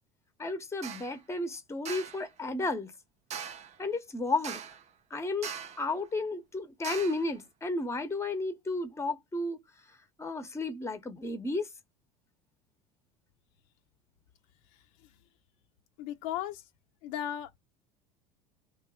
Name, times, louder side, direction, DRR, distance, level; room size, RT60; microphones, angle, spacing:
voice 1, 0.4-2.9 3.8-4.6 5.1-5.5 5.8-9.6 10.2-11.7, left 2 dB, 15° left, 0.8 m, -33 dB
sound 1, 0.8-1.1 1.9-2.2 3.3-3.8 4.4-4.9 5.4-5.9 6.8-7.3, right 7 dB, 35° right, 0.7 m, -40 dB
voice 2, 14.7-15.2 16.0-16.7 17.0-17.6, left 11 dB, 65° left, 0.6 m, -37 dB
2.9 x 2.6 x 3.6 m
hypercardioid pair, 70°, 19 cm